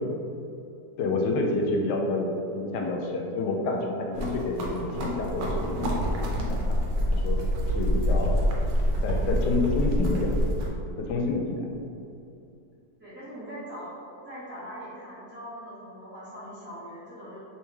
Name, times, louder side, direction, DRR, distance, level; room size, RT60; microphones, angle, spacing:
voice 1, 1.0-6.8 7.1-7.4 7.7-8.4 9.0-10.6 11.0-11.6, left 3 dB, 80° left, 1 dB, 1.1 m, -28 dB
sound 1, 4.1-10.7, equal, 90° right, 1.3 m, -26 dB
voice 2, 13.0-14.0 14.2-17.4, equal, 5° right, -12 dB, 1.1 m, -41 dB
3.1 x 3.1 x 3.3 m, 2.6 s
omnidirectional pair, 1.8 m